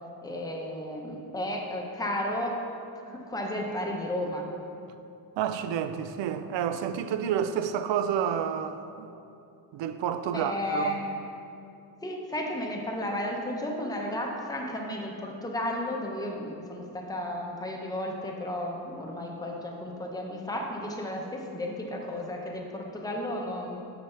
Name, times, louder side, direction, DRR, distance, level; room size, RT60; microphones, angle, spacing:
voice 1, 0.2-2.6 3.1-4.5 10.3-11.1 12.0-23.8, left 1 dB, 10° left, 0.7 m, -33 dB
voice 2, 5.4-9.1 9.7-11.0, right 8 dB, 85° right, 0.5 m, -29 dB
8.8 x 3.4 x 5.6 m
cardioid pair, 135°, 43 cm